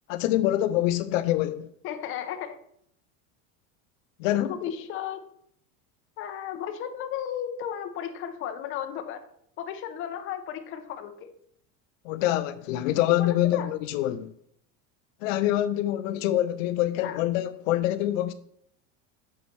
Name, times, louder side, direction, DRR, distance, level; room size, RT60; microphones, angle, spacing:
voice 1, 0.1-1.7 4.2-4.6 12.0-14.3 15.2-18.3, left 13 dB, 75° left, 0.5 m, -25 dB
voice 2, 1.8-2.6 4.3-5.2 6.2-9.2 9.6-11.3 13.2-13.7 17.0-17.2, left 9 dB, 30° left, 0.7 m, -34 dB
7.9 x 5.7 x 3.2 m
supercardioid pair, 150°, 40 cm